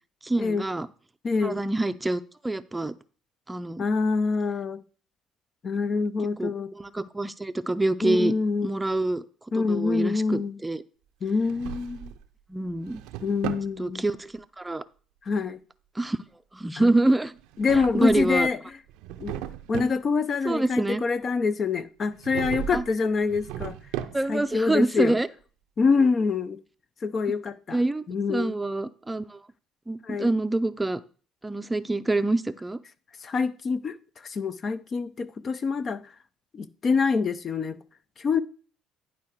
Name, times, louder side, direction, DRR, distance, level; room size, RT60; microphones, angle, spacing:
voice 1, 0.2-0.9 1.4-2.9 3.5-3.8 6.4-8.3 8.6-9.2 9.5-10.8 12.5-13.0 13.8-14.8 16.0-16.2 16.5-17.3 17.7-18.5 19.7-19.9 20.4-21.0 22.7-22.8 24.1-25.3 27.7-28.0 28.3-29.4 29.9-31.0 31.4-32.8, right 2 dB, 15° right, 0.5 m, -26 dB
voice 2, 1.2-1.6 3.8-4.8 5.6-6.7 8.0-8.7 9.5-10.6 11.2-12.1 13.2-14.0 15.3-15.6 16.8-16.9 17.6-18.6 19.2-19.4 19.7-23.8 24.3-25.2 25.8-26.6 27.0-27.8 28.1-28.5 30.0-30.3 33.2-34.0 34.2-36.0 36.5-37.8 38.2-38.4, left 4 dB, 45° left, 0.6 m, -26 dB
Drawer open or close, 11.3-12.3 12.7-13.7 17.4-18.5 18.9-20.0 22.2-22.9 23.2-24.5, right 11 dB, 80° right, 0.5 m, -36 dB
10.5 x 4.8 x 4.6 m
supercardioid pair, 75°, 0 cm